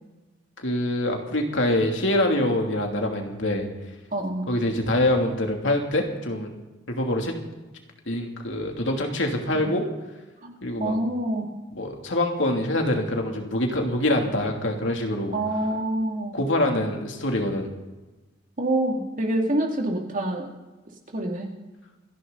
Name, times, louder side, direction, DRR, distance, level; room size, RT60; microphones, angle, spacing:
voice 1, 0.6-3.6 4.5-6.5 6.9-7.3 8.1-9.8 10.6-11.0 11.7-15.4 16.3-17.7, left 1 dB, 75° left, 2 dB, 2.8 m, -25 dB
voice 2, 4.1-4.5 9.5-9.7 10.4-11.5 15.3-16.4 18.6-20.5 21.1-21.5, right 1 dB, 45° right, 1 dB, 2.6 m, -26 dB
27.0 x 11.0 x 4.0 m, 1.1 s
head